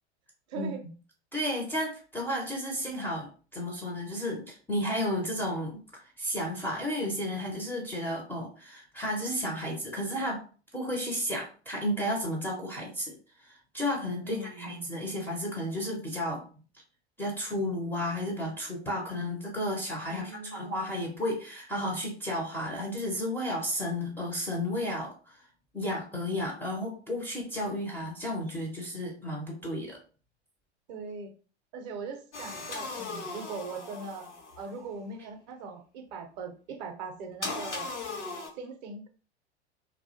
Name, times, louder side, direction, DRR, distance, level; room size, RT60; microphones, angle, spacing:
voice 1, 0.5-0.8 14.2-14.9 20.1-21.0 30.9-31.3 31.7-34.3 34.6-37.9 38.6-39.1, right 4 dB, 40° right, 4 dB, 0.5 m, -40 dB
voice 2, 1.3-10.4 10.7-13.2 13.4-16.4 17.2-25.4 25.7-30.0, left 1 dB, 5° left, -2 dB, 0.4 m, -33 dB
sound 1, 32.3-34.8 37.4-38.5, left 3 dB, 85° left, 0.7 m, -38 dB
2.2 x 2.0 x 2.8 m, 0.38 s
figure-of-eight pair, 85°, 34 cm